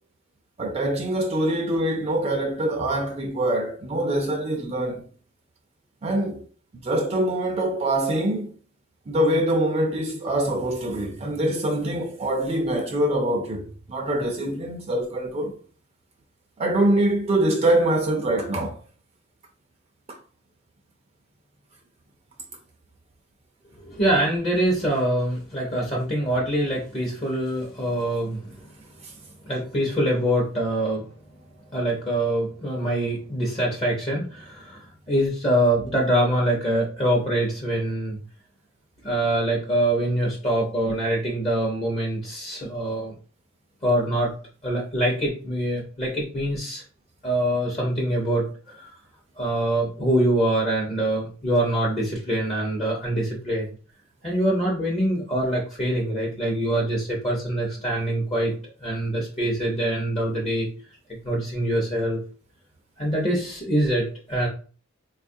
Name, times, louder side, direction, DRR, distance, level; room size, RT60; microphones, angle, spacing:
voice 1, 0.6-5.0 6.0-6.4 6.8-8.5 9.1-15.6 16.6-18.8 29.0-29.1, right 1 dB, 30° right, 0.4 m, -24 dB
voice 2, 23.8-28.6 29.5-31.0 31.7-38.2 39.0-43.1 43.8-44.3 44.6-46.8 47.2-48.9 49.4-53.7 54.2-58.5 58.8-60.7 61.1-62.2 63.0-64.5, right 1 dB, 30° left, 0.7 m, -24 dB
4.1 x 2.3 x 2.6 m
head